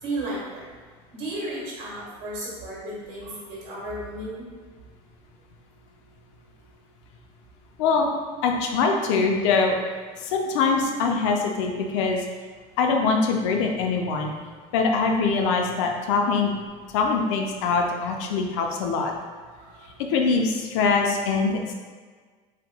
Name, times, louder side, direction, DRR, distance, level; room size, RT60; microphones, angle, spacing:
voice 1, 0.0-0.7 1.1-4.5 17.6-17.9 19.5-19.9, right 1 dB, 80° right, -6 dB, 1.5 m, -34 dB
voice 2, 8.4-9.8 10.2-12.2 12.8-14.3 14.7-16.5 16.9-19.1 20.1-21.7, left 4 dB, 90° left, 2 dB, 0.5 m, -23 dB
4.2 x 2.9 x 2.2 m, 1.5 s
supercardioid pair, 120°, 15 cm